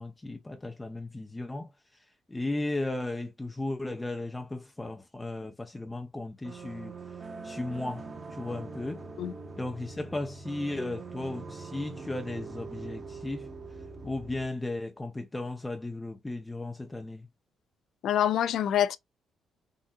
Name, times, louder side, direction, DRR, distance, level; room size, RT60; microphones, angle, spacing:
voice 1, 0.0-6.9 7.4-9.0 9.6-13.5 14.0-17.3, left 2 dB, 15° left, 0.5 m, -35 dB
sound 1, 6.4-14.4, right 4 dB, 40° right, 0.9 m, -43 dB
voice 2, 18.0-19.0, left 10 dB, 70° left, 0.4 m, -25 dB
3.8 x 2.6 x 2.2 m
cardioid pair, 90°, 0 cm